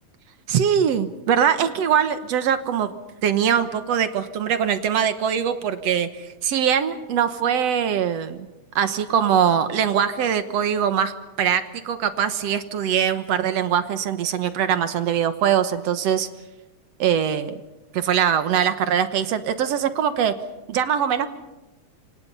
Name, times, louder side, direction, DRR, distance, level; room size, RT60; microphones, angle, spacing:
voice 1, 0.5-2.9 3.2-8.5 8.8-11.1 11.4-16.3 17.0-17.5 17.9-20.3 20.7-21.3, right 8 dB, 65° right, 10 dB, 2.1 m, -22 dB
28.5 x 26.0 x 5.6 m, 1.0 s
omnidirectional pair, 3.3 m